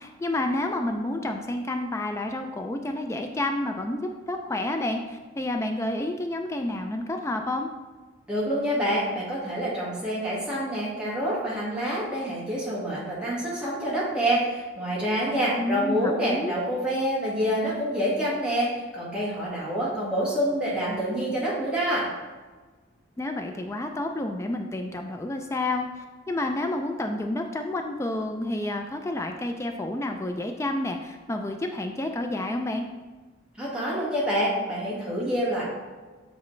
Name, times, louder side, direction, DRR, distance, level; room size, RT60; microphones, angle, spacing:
voice 1, 0.0-7.7 15.6-16.5 23.2-32.9, left 1 dB, 15° left, 4 dB, 0.3 m, -30 dB
voice 2, 8.3-22.1 33.6-35.6, equal, 5° right, -7 dB, 1.7 m, -27 dB
8.1 x 4.1 x 3.2 m, 1.3 s
head